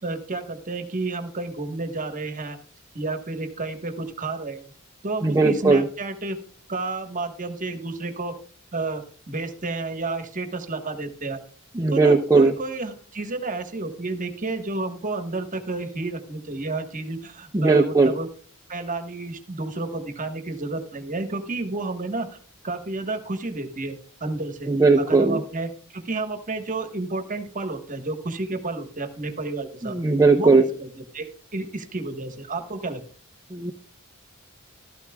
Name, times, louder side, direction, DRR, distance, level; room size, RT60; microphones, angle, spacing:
voice 1, 0.0-2.6 2.9-4.7 5.0-6.4 6.7-8.4 8.7-11.4 11.9-18.3 18.7-22.4 22.6-24.7 25.0-30.0 30.4-33.0, right 3 dB, 40° right, 8 dB, 1.4 m, -31 dB
voice 2, 5.2-5.8 11.8-12.5 17.5-18.1 24.7-25.4 29.8-30.6 33.5-33.7, right 3 dB, 15° right, 2 dB, 0.7 m, -18 dB
13.0 x 13.0 x 2.3 m, 0.43 s
head